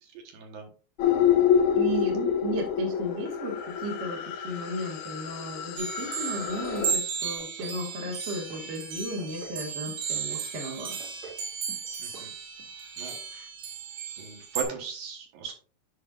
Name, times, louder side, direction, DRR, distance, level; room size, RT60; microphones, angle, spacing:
voice 1, 0.0-0.7 12.0-12.3 13.0-13.5 14.2-15.5, right 6 dB, 70° right, 3 dB, 2.9 m, -38 dB
sound 1, 1.0-6.9, left 8 dB, 75° left, 2.5 m, -27 dB
voice 2, 1.7-10.9, right 1 dB, 35° right, -1 dB, 1.1 m, -35 dB
sound 2, 5.8-14.6, right 6 dB, 90° right, 3.5 m, -35 dB
sound 3, 7.4-7.8 8.0-8.6 8.9-9.6 9.9-10.4 10.8-11.4 11.7-11.9 12.1-12.3 12.6-12.7, right 5 dB, 50° right, 2.7 m, -46 dB
10.0 x 5.7 x 2.5 m, 0.39 s
omnidirectional pair, 4.5 m